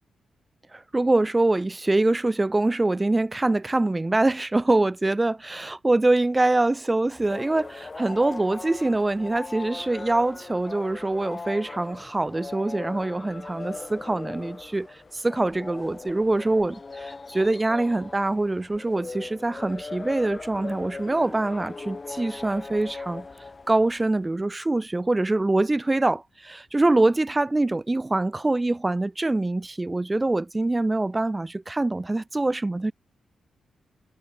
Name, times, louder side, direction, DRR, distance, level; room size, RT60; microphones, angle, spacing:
voice 1, 0.7-23.2 23.7-32.9, right 2 dB, 20° right, 1.1 m, -24 dB
sound 1, 7.2-24.2, left 3 dB, 30° left, 6.5 m, -39 dB
cardioid pair, 95°, 0 cm